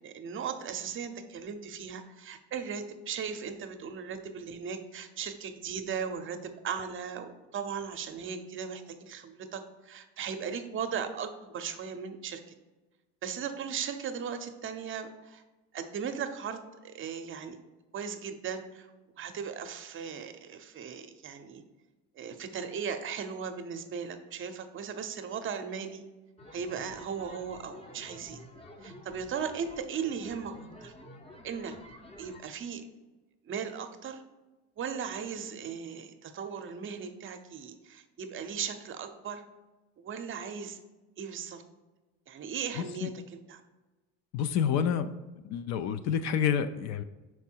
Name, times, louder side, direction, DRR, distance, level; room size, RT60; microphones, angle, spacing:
voice 1, 0.0-12.4 13.2-15.4 15.7-17.6 17.9-18.9 19.2-21.6 22.2-26.0 26.5-28.4 28.8-30.5 30.8-30.9 31.4-31.8 32.2-32.8 33.4-34.2 34.8-39.4 40.0-40.8 41.2-41.6 42.3-43.6, right 6 dB, 35° right, 8 dB, 0.7 m, -37 dB
sound 1, 26.4-32.4, left 1 dB, 15° left, 0.7 m, -50 dB
voice 2, 44.3-45.1 45.4-47.0, left 8 dB, 50° left, 12 dB, 0.5 m, -28 dB
5.3 x 4.6 x 4.5 m, 1.1 s
supercardioid pair, 105°, 34 cm